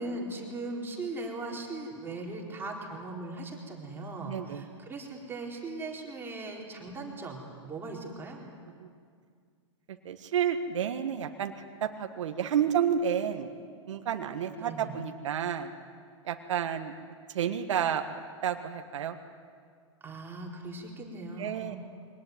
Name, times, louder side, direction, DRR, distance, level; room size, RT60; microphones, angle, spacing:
voice 1, 0.0-8.5 14.6-14.9 20.0-21.8, right 2 dB, 15° right, -1 dB, 4.0 m, -39 dB
voice 2, 4.3-4.6 8.8-8.9 10.0-11.5 11.8-13.5 13.9-15.7 16.2-16.9 17.3-18.0 18.4-19.2 21.4-21.8, right 8 dB, 75° right, 6 dB, 1.5 m, -30 dB
23.0 x 18.5 x 9.4 m, 2.1 s
hypercardioid pair, 130°, 16 cm